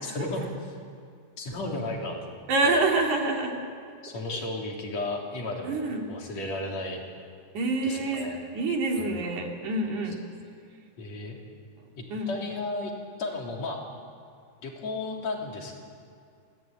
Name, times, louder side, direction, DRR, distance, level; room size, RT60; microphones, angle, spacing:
voice 1, 0.0-0.7 1.4-2.8 4.0-7.0 7.8-8.4 9.0-9.2 10.1-10.2 11.0-11.4 12.0-12.9 13.2-13.8 14.6-15.8, left 2 dB, 65° left, 0 dB, 4.5 m, -34 dB
voice 2, 2.5-3.6 5.6-6.1 7.5-10.2 12.1-12.3, right 2 dB, 85° right, 1 dB, 4.2 m, -27 dB
27.5 x 19.0 x 9.2 m, 2.4 s
omnidirectional pair, 3.3 m